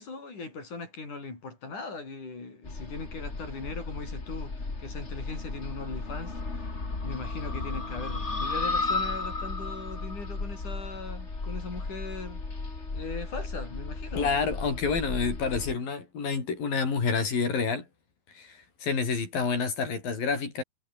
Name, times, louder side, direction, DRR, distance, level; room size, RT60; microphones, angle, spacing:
voice 1, 0.0-6.7 7.0-12.4 12.9-14.3, left 3 dB, 60° left, 8.8 m, -39 dB
sound 1, 2.6-15.7, left 3 dB, 20° left, 2.8 m, -34 dB
voice 2, 14.2-17.9 18.3-20.6, left 5 dB, 85° left, 7.2 m, -28 dB
omnidirectional pair, 3.9 m